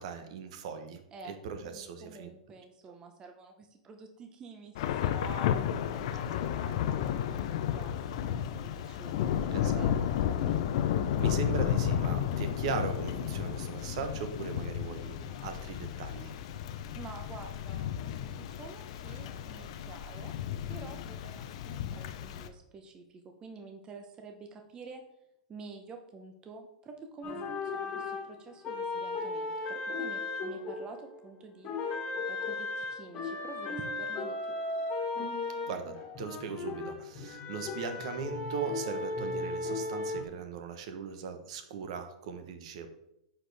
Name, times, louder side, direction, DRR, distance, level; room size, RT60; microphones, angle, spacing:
voice 1, 0.0-1.0 1.2-2.3 6.7-6.8 9.5-9.9 11.2-16.3 35.7-42.9, right 5 dB, 60° right, 8 dB, 1.0 m, -39 dB
voice 2, 1.1-10.0 10.2-10.4 16.9-20.3 20.7-25.0 25.5-31.7 32.3-34.6, right 3 dB, 20° right, 5 dB, 0.8 m, -48 dB
Thunder / Rain, 4.8-22.5, left 9 dB, 60° left, 0.6 m, -32 dB
sound 1, 27.2-31.3 31.6-40.2, left 3 dB, 30° left, 1.6 m, -36 dB
9.7 x 4.4 x 3.4 m, 0.82 s
hypercardioid pair, 135°, 4 cm